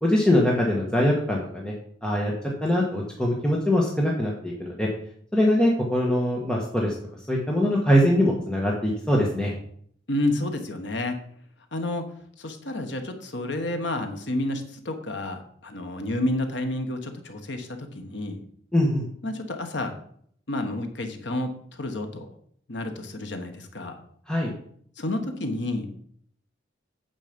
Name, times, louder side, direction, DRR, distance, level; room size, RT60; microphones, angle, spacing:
voice 1, 0.0-1.7 2.0-2.3 2.6-4.9 5.3-6.9 7.3-9.5 18.7-19.0 24.3-24.5, left 1 dB, 5° left, -3 dB, 1.4 m, -22 dB
voice 2, 10.1-11.2 11.7-12.0 12.4-18.4 19.2-19.9 20.5-22.3 22.7-24.0 25.0-25.9, left 1 dB, 70° left, 5 dB, 1.4 m, -30 dB
9.1 x 7.4 x 5.3 m, 0.63 s
head